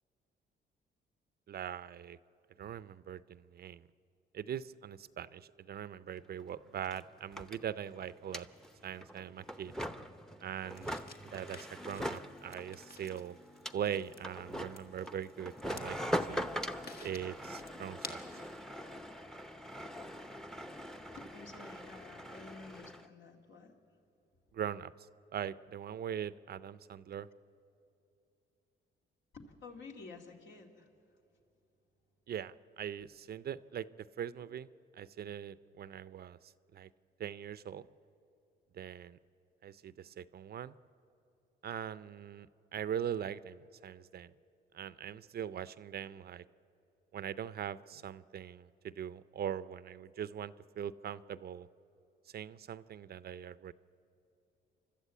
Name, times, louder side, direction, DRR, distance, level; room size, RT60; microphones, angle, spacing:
voice 1, 1.5-2.2 2.6-3.9 4.3-8.5 8.8-9.7 10.4-13.4 13.7-16.4 17.0-18.2 24.5-24.9 25.3-27.3 32.3-34.7 34.9-36.9 37.2-37.9 38.7-39.2 39.6-40.7 41.6-44.3 44.7-46.4 47.1-51.7 52.3-53.7, right 9 dB, 50° right, 16 dB, 0.5 m, -41 dB
sound 1, 6.2-6.3 6.4-23.1, equal, 5° left, 0.7 m, -42 dB
sound 2, 10.7-18.6, left 4 dB, 50° left, 1.6 m, -53 dB
voice 2, 21.1-23.8 27.1-27.2 29.3-30.9, left 4 dB, 65° left, 2 dB, 2.4 m, -51 dB
28.5 x 12.5 x 8.4 m, 2.8 s
cardioid pair, 90°, 20 cm